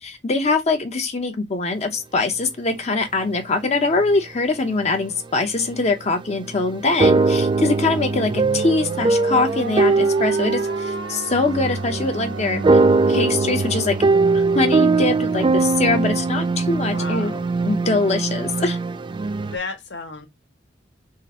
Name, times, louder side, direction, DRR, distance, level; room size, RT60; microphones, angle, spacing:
voice 1, 0.0-12.8 13.1-14.0 14.3-17.3 17.7-18.8, left 3 dB, 40° left, 0.7 m, -23 dB
sound 1, 5.7-5.8 6.5-19.6, right 3 dB, 25° right, 0.3 m, -21 dB
sound 2, 7.9-14.4, right 2 dB, 80° right, 1.1 m, -34 dB
voice 2, 16.9-17.5 19.4-20.3, left 3 dB, 75° left, 1.3 m, -33 dB
3.8 x 2.5 x 4.2 m
head